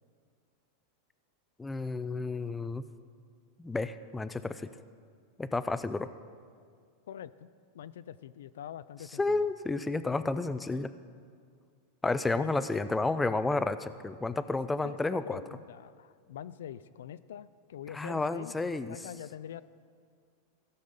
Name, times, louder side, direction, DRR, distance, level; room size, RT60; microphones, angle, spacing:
voice 1, 1.6-2.8 3.6-4.7 5.4-6.1 9.2-10.9 12.0-15.4 17.9-19.0, left 3 dB, 10° left, 12 dB, 0.4 m, -31 dB
voice 2, 7.1-7.5 7.7-9.5 12.3-12.5 14.8-19.6, left 10 dB, 85° left, 15 dB, 0.4 m, -44 dB
15.0 x 5.5 x 6.6 m, 2.1 s
supercardioid pair, 135°, 0 cm